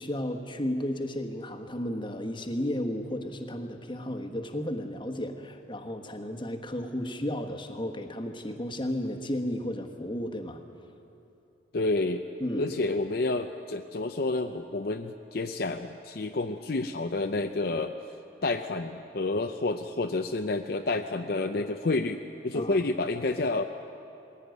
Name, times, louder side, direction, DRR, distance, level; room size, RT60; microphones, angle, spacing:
voice 1, 0.0-10.6 12.4-12.7 22.5-22.8, left 1 dB, 25° left, 4 dB, 1.4 m, -33 dB
voice 2, 11.7-12.2 12.6-17.9 18.4-23.6, left 2 dB, 55° left, 5 dB, 0.6 m, -29 dB
21.0 x 16.5 x 9.4 m, 2.8 s
head